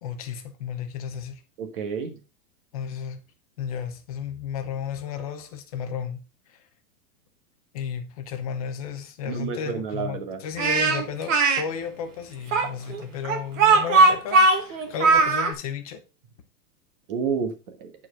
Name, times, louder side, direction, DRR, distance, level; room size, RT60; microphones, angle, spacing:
voice 1, 0.0-1.4 2.7-3.2 3.6-6.2 6.5-6.6 7.7-16.0, left 7 dB, 25° left, 0.8 m, -33 dB
voice 2, 1.6-2.2 9.2-10.4 17.1-17.9, right 6 dB, 35° right, 1.4 m, -30 dB
Speech, 10.6-11.6 12.5-15.5, right 3 dB, 50° right, 1.7 m, -19 dB
9.6 x 4.6 x 5.0 m
supercardioid pair, 175°, 49 cm